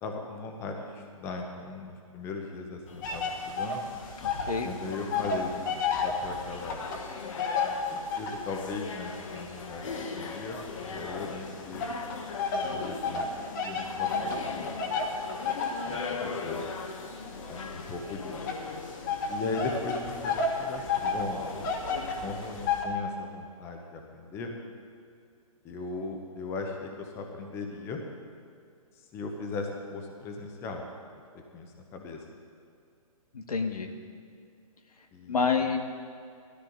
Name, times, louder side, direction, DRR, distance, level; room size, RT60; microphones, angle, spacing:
voice 1, 0.0-4.0 4.6-6.8 7.9-11.9 12.7-13.3 13.5-14.7 15.8-16.7 17.5-18.5 19.3-21.5 22.2-24.5 25.6-28.0 28.9-30.9 31.5-32.2 35.1-35.4, left 3 dB, 15° left, 3 dB, 0.9 m, -38 dB
sound 1, 2.9-22.7, left 4 dB, 60° left, 1.3 m, -40 dB
sound 2, 3.0-4.6 4.8-8.5 9.1-11.2 11.8-22.8, left 4 dB, 30° left, 1.4 m, -32 dB
voice 2, 4.2-4.7 33.3-33.9 35.3-35.8, left 5 dB, 85° left, 4 dB, 1.6 m, -28 dB
16.0 x 13.5 x 3.9 m, 2.3 s
hypercardioid pair, 160°, 19 cm